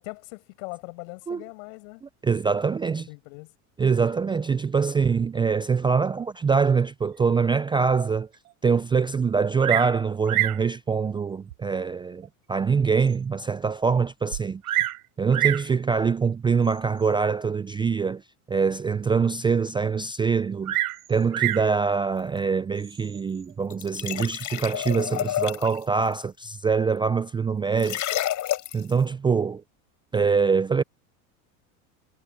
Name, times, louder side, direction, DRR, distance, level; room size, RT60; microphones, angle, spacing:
voice 1, 0.0-2.0 2.9-3.6 4.2-4.4, left 34 dB, 65° left, 7.3 m, -41 dB
voice 2, 2.2-3.1 3.8-8.3 8.6-14.8 15.2-18.2 18.5-20.8 21.1-28.0 28.7-29.6 30.1-30.8, right 5 dB, 10° right, 0.4 m, -24 dB
Bird vocalization bird call bird song, 9.6-10.0 10.3-10.7 11.5-11.6 12.2-12.3 12.8-12.9 13.1-13.2 14.3-15.0 15.3-15.7 16.7-17.0 20.6-21.7 22.8-23.2, right 15 dB, 85° right, 4.9 m, -26 dB
sound 1, 23.7-25.8 27.8-28.9, left 13 dB, 45° left, 5.4 m, -29 dB
supercardioid pair, 105°, 43 cm